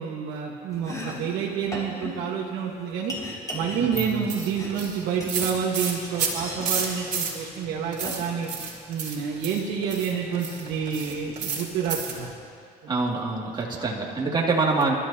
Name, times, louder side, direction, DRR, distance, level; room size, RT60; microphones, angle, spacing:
voice 1, 0.0-3.2 3.5-8.5 8.9-12.3 12.8-13.0, right 7 dB, 80° right, -4 dB, 1.5 m, -29 dB
Domestic sounds home sounds, 0.7-8.9, left 1 dB, 20° left, 3.5 m, -39 dB
voice 2, 3.8-4.3 12.9-14.9, right 3 dB, 25° right, -3 dB, 2.4 m, -25 dB
sound 1, 4.0-7.6 7.9-12.3, right 6 dB, 45° right, 3.2 m, -31 dB
27.5 x 13.5 x 2.9 m, 2.4 s
cardioid pair, 110°, 17 cm